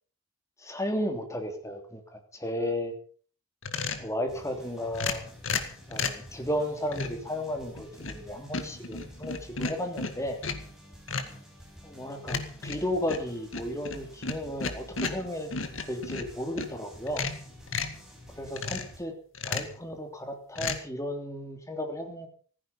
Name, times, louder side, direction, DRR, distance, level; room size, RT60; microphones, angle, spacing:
voice 1, 0.6-2.9 3.9-5.2 5.9-10.4 11.8-15.5 15.8-17.3 18.3-19.1 19.4-22.3, left 1 dB, 15° left, 4 dB, 3.2 m, -34 dB
sound 1, 3.6-4.1 4.9-6.3 6.9-7.3 7.8-8.3 8.5-10.7 11.1-11.4 12.3-16.7 17.1-18.0 18.6-19.0 19.3-19.8 20.6-20.8, left 4 dB, 75° left, 2.2 m, -34 dB
sound 2, 4.3-19.0, equal, 5° right, 6.0 m, -51 dB
15.5 x 15.0 x 5.4 m, 0.44 s
head